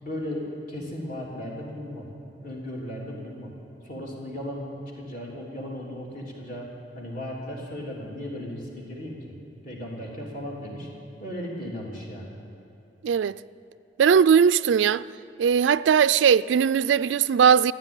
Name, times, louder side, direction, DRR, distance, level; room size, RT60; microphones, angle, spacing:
voice 1, 0.0-2.1 2.4-3.5 3.8-9.2 9.6-10.9 11.2-12.3, left 1 dB, 50° left, 3.4 m, -36 dB
voice 2, 13.0-13.4 14.0-15.0 15.4-17.7, right 7 dB, 90° right, 0.3 m, -19 dB
15.0 x 10.5 x 9.0 m
head